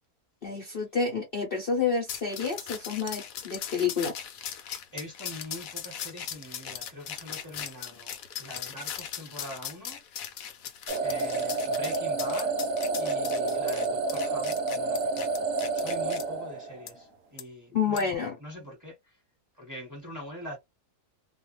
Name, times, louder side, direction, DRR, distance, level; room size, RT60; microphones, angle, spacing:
voice 1, 0.4-4.1 17.7-18.4, left 5 dB, 45° left, 0.9 m, -29 dB
sound 1, 2.1-16.2 16.9-17.0 17.4-17.5 18.0-18.2, left 9 dB, 70° left, 1.0 m, -39 dB
voice 2, 4.9-10.0 11.0-12.6 13.0-15.4 15.7-19.2 19.6-20.6, equal, 10° right, 1.3 m, -43 dB
sound 2, 10.9-17.0, right 3 dB, 65° right, 0.9 m, -29 dB
2.5 x 2.3 x 3.1 m
omnidirectional pair, 1.6 m